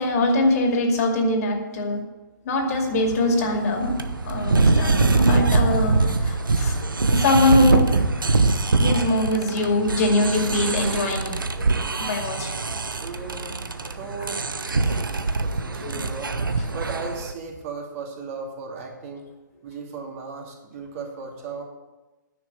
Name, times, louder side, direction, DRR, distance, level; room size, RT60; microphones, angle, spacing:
voice 1, 0.0-2.0 2.4-3.9 4.2-7.9 8.6-11.6 12.0-12.5 15.8-16.0, left 2 dB, 50° left, 2 dB, 2.4 m, -23 dB
sound 1, 2.7-17.3, right 3 dB, 85° right, 0.9 m, -23 dB
voice 2, 13.0-14.4 14.7-15.1 15.4-16.4 16.7-19.3 19.6-21.6, right 4 dB, 40° right, 0 dB, 2.7 m, -36 dB
10.0 x 6.7 x 8.1 m, 1.1 s
hypercardioid pair, 130°, 11 cm